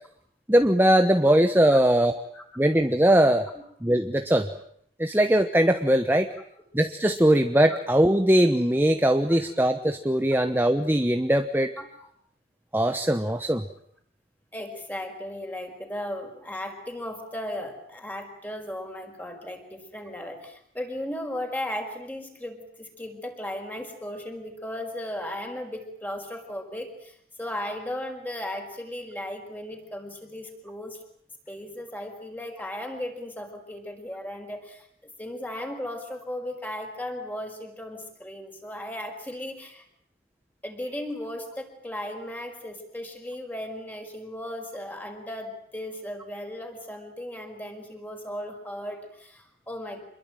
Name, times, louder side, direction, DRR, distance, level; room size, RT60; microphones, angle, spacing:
voice 1, 0.5-2.1 2.6-3.5 3.8-4.5 5.0-6.3 6.7-11.7 12.7-13.6, right 1 dB, 10° right, 7 dB, 1.1 m, -21 dB
voice 2, 14.5-31.0 31.5-39.8 40.6-50.0, left 1 dB, 10° left, 4 dB, 5.2 m, -36 dB
27.0 x 22.0 x 9.0 m, 0.68 s
head